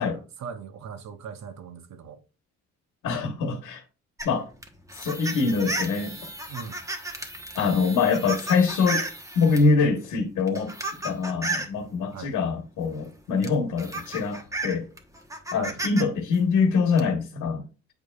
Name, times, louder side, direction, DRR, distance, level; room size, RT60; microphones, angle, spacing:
voice 1, 0.0-2.2 6.5-6.8 12.1-12.3 15.5-15.8, right 7 dB, 65° right, 0.9 m, -40 dB
voice 2, 3.0-3.8 4.2-4.5 4.9-6.3 7.5-9.0 9.3-10.7 11.0-14.9 15.5-17.6, left 4 dB, 85° left, 1.3 m, -24 dB
sound 1, 4.2-9.7 10.4-11.8 13.0-13.1 13.4-16.0 16.3-17.0, right 2 dB, 10° right, 1.2 m, -33 dB
8.7 x 4.7 x 2.4 m
cardioid pair, 90°, 30 cm